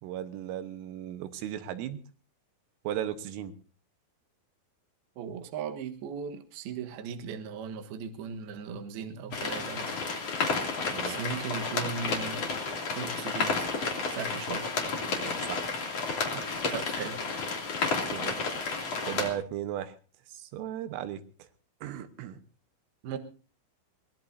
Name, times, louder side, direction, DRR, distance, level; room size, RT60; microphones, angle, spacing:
voice 1, 0.0-2.0 2.9-3.5 10.9-11.2 14.9-15.7 16.3-16.5 17.9-18.4 19.1-20.0 20.3-21.2 21.8-22.4, right 11 dB, 90° right, 10 dB, 3.8 m, -36 dB
voice 2, 5.2-10.0 11.0-12.5 12.9-13.7 14.1-14.7 16.7-17.3 23.0-23.2, right 6 dB, 65° right, 6 dB, 2.8 m, -37 dB
sound 1, 9.3-19.3, left 4 dB, 40° left, 3.1 m, -31 dB
22.5 x 20.0 x 2.7 m, 0.39 s
omnidirectional pair, 5.7 m